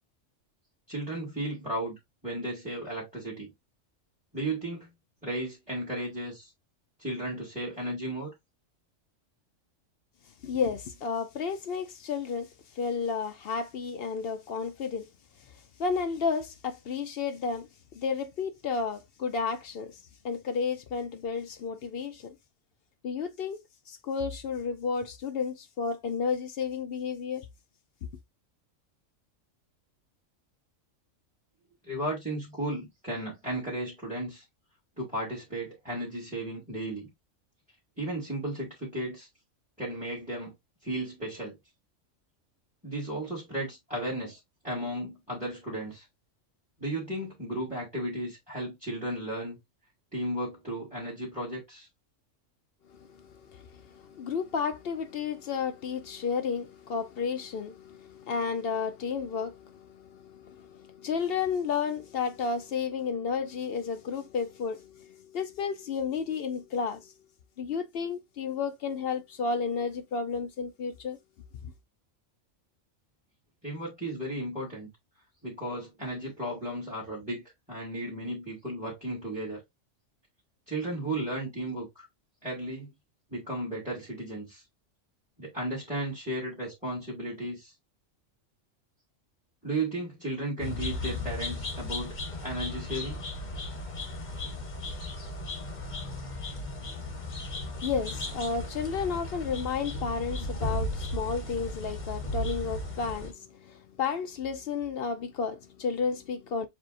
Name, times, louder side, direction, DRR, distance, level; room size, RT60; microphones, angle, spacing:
voice 1, 0.9-2.0 2.2-3.5 4.3-4.9 5.2-6.5 7.0-8.3 31.8-34.4 35.0-37.1 38.0-39.3 39.8-40.5 40.8-41.6 42.8-46.0 46.8-49.6 50.1-51.9 73.6-74.9 75.4-77.4 77.7-79.6 80.7-82.1 82.4-82.9 83.3-84.6 85.4-87.7 89.6-92.1 92.4-93.2, right 1 dB, 5° right, 2.1 m, -34 dB
voice 2, 10.4-12.5 12.8-15.0 15.8-17.7 17.9-20.0 20.2-22.3 23.0-23.6 23.9-27.5 52.9-67.1 67.6-71.2 97.8-106.7, left 5 dB, 60° left, 0.7 m, -32 dB
sound 1, 90.6-103.3, left 1 dB, 40° left, 1.1 m, -36 dB
7.3 x 2.7 x 2.5 m
omnidirectional pair, 1.3 m